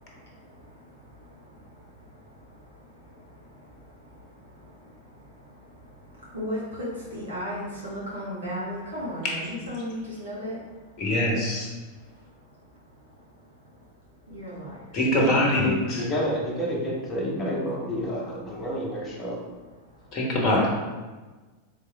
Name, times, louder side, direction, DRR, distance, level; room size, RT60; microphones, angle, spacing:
voice 1, 0.1-2.3 2.5-2.7 3.0-10.6 14.3-14.9, equal, 65° right, -6 dB, 1.3 m, -37 dB
voice 2, 11.0-11.7 14.9-16.1 20.1-20.7, left 1 dB, 35° left, -2 dB, 1.1 m, -23 dB
voice 3, 15.6-19.4, equal, 20° left, -4 dB, 1.1 m, -29 dB
3.5 x 3.5 x 3.4 m, 1.3 s
figure-of-eight pair, 90°, 0 cm